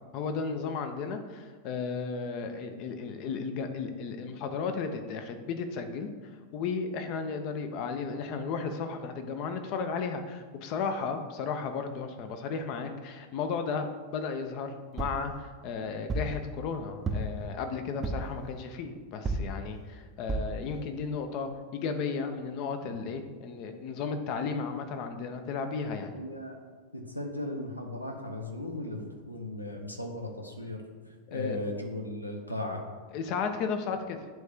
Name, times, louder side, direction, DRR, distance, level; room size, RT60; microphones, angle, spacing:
voice 1, 0.1-6.1 6.5-13.9 14.1-26.2 31.3-31.6 33.1-34.2, left 5 dB, 40° left, 7 dB, 0.6 m, -34 dB
sound 1, 15.0-15.3 16.1-16.4 17.1-17.5 18.0-18.4 19.3-19.6 20.3-20.6 21.2-21.3 21.5-21.6, right 2 dB, 20° right, 0.6 m, -32 dB
voice 2, 26.1-26.6 26.9-30.8 31.3-32.8, left 1 dB, 85° left, 3 dB, 0.8 m, -37 dB
9.0 x 3.2 x 3.6 m, 1.4 s
figure-of-eight pair, 90°, 0 cm